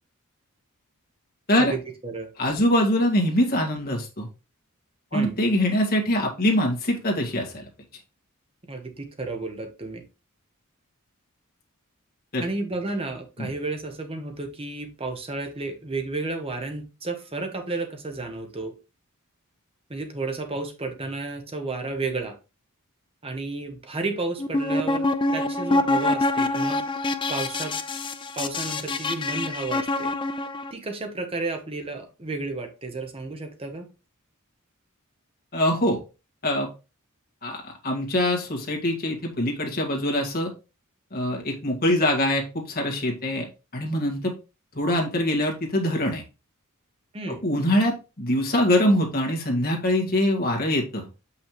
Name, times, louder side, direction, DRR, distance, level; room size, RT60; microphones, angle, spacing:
voice 1, 1.6-2.3 5.1-5.4 8.7-10.0 12.4-18.7 19.9-22.4 23.2-25.1 25.3-26.8 27.3-27.7 28.4-30.1 30.7-33.9 47.1-47.4, right 3 dB, 25° right, 5 dB, 1.0 m, -32 dB
voice 2, 2.4-4.3 5.1-7.6 12.3-12.4 13.4-13.5 35.5-36.0 36.4-36.7 37.4-40.5 41.1-43.5 43.7-44.3 44.7-46.2 47.4-51.1, left 1 dB, 45° left, 0 dB, 1.9 m, -23 dB
sound 1, 24.4-30.7, left 2 dB, 20° left, 0.5 m, -25 dB
7.5 x 5.7 x 3.1 m, 0.30 s
head